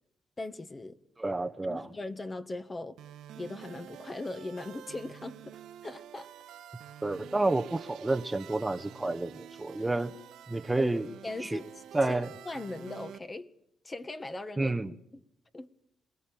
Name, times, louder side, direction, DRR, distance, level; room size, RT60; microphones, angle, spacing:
voice 1, 0.4-1.0 1.7-3.0 3.3-6.3 10.8-10.9 11.2-12.2 12.4-13.5 13.8-14.7 15.1-15.2 15.5-15.7, left 2 dB, 25° left, 1.6 m, -39 dB
voice 2, 1.2-1.9 7.0-10.1 10.5-11.1 11.4-11.6 11.9-12.3 14.6-14.9, right 2 dB, 15° right, 1.2 m, -29 dB
sound 1, 3.0-13.2, right 10 dB, 80° right, 1.6 m, -48 dB
27.5 x 21.0 x 9.0 m
cardioid pair, 90°, 0 cm